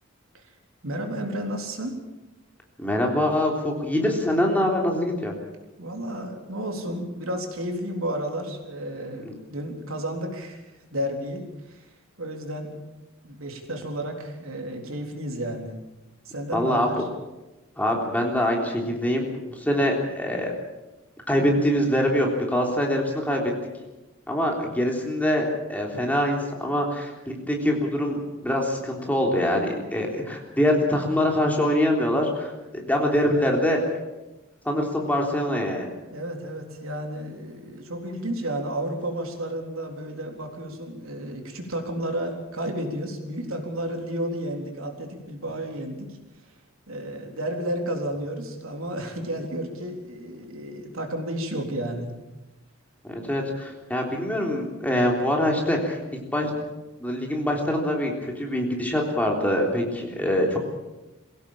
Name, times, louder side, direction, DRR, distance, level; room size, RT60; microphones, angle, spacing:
voice 1, 0.8-2.0 5.8-11.8 12.2-12.8 13.2-15.7 16.3-17.0 36.1-46.2 46.9-52.1, right 1 dB, 80° right, 2 dB, 3.8 m, -32 dB
voice 2, 2.8-5.3 9.3-9.4 16.5-17.1 17.8-20.5 21.3-23.5 24.3-33.8 34.7-35.9 53.1-56.0 56.3-56.5 57.0-60.6, left 1 dB, 10° left, 0 dB, 3.5 m, -24 dB
22.5 x 17.0 x 7.3 m, 1.1 s
head